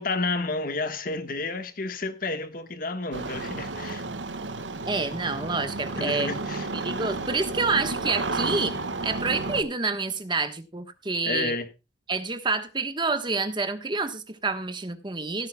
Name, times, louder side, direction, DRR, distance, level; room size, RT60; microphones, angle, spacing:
voice 1, 0.0-4.0 6.0-6.7 11.2-11.7, left 3 dB, 50° left, 1.4 m, -30 dB
Engine starting, 3.1-9.6, right 3 dB, 90° right, 1.4 m, -32 dB
voice 2, 4.9-6.3 6.7-8.7 9.0-11.5 12.1-15.5, right 3 dB, 25° right, 1.2 m, -28 dB
16.0 x 12.5 x 2.3 m
head